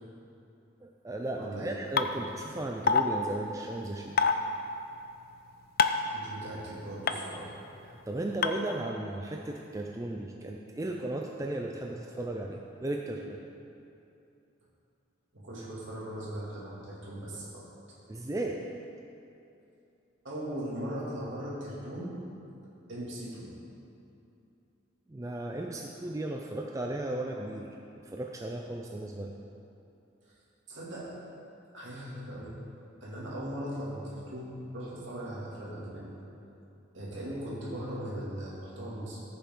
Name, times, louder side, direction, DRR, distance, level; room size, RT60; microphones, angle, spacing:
voice 1, 0.8-4.2 7.9-13.4 18.1-18.7 25.1-27.7 28.0-29.4, right 1 dB, 15° right, 1 dB, 0.4 m, -35 dB
voice 2, 1.4-1.8 6.1-7.6 15.3-17.7 20.2-22.2 22.9-23.5 30.7-31.1 31.7-32.6 33.0-36.1 36.9-39.2, right 1 dB, 65° right, -6 dB, 2.5 m, -39 dB
sound 1, 2.0-2.1 2.9-3.0 4.2-4.3 5.8-6.0 7.1-7.2 8.4-8.5, left 5 dB, 45° left, 0.4 m, -22 dB
14.5 x 7.0 x 3.8 m, 2.7 s
head